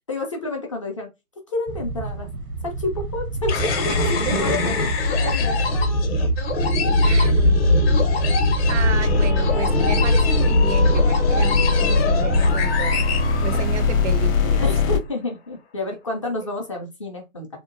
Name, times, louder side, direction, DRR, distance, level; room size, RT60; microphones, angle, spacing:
voice 1, 0.1-1.1 1.5-2.3 2.6-6.3 7.3-7.5 8.7-9.0 14.6-17.5, left 2 dB, 25° left, 0.4 m, -30 dB
sound 1, 1.7-10.5, right 3 dB, 85° right, 0.8 m, -28 dB
sound 2, 3.5-14.1, left 2 dB, 45° left, 0.8 m, -21 dB
voice 2, 7.0-7.5 8.7-13.0 13.4-14.7, right 7 dB, 60° right, 0.5 m, -32 dB
sound 3, 8.7-15.0, left 4 dB, 75° left, 0.6 m, -22 dB
2.8 x 2.1 x 2.4 m
figure-of-eight pair, 135°, 41 cm